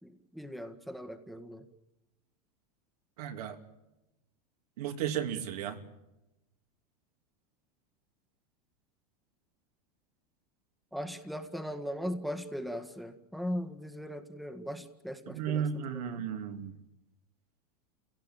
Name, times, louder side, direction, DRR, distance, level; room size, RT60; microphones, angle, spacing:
voice 1, 0.0-1.7 10.9-16.3, equal, ahead, 7 dB, 1.8 m, -39 dB
voice 2, 3.2-3.6 4.8-5.8 15.3-16.8, right 8 dB, 75° right, 6 dB, 3.1 m, -34 dB
28.5 x 17.5 x 9.1 m, 0.96 s
supercardioid pair, 120°, 20 cm